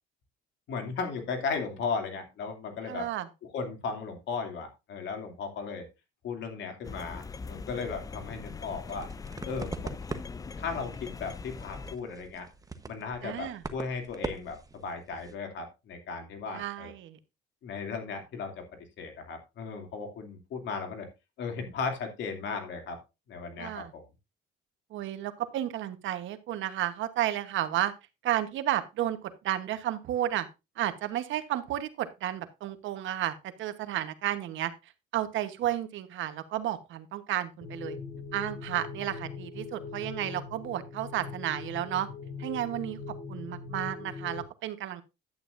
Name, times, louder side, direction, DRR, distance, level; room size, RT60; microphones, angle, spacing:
voice 1, 0.7-3.1 3.4-5.8 6.2-9.1 9.4-9.9 10.6-12.5 12.9-16.9 17.6-18.6 19.0-21.1 21.4-23.0 23.3-24.0, left 5 dB, 60° left, 5 dB, 2.7 m, -36 dB
voice 2, 2.9-3.3 13.2-13.6 16.5-17.2 23.6-23.9 24.9-27.9 28.2-30.5 30.8-34.7 35.1-38.0 38.3-42.1 42.4-43.0 43.3-45.0, right 12 dB, 65° right, 11 dB, 1.2 m, -32 dB
sound 1, 6.8-12.0, left 4 dB, 15° left, 0.4 m, -41 dB
sound 2, 8.6-15.3, right 3 dB, 15° right, 1.1 m, -42 dB
sound 3, 37.6-44.4, left 4 dB, 35° left, 4.0 m, -41 dB
11.0 x 8.9 x 2.6 m, 0.25 s
cardioid pair, 100°, 21 cm